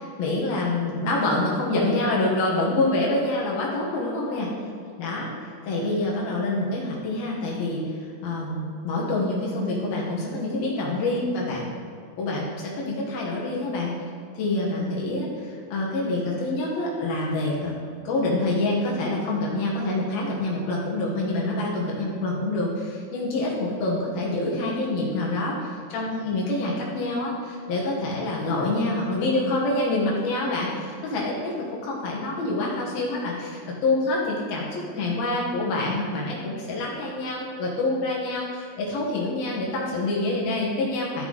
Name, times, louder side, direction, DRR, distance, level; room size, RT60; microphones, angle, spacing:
voice 1, 0.0-4.5 5.0-5.3 5.6-11.7 12.2-13.9 14.3-41.3, left 2 dB, 65° left, -4 dB, 2.8 m, -26 dB
14.5 x 5.7 x 3.9 m, 2.3 s
omnidirectional pair, 5.3 m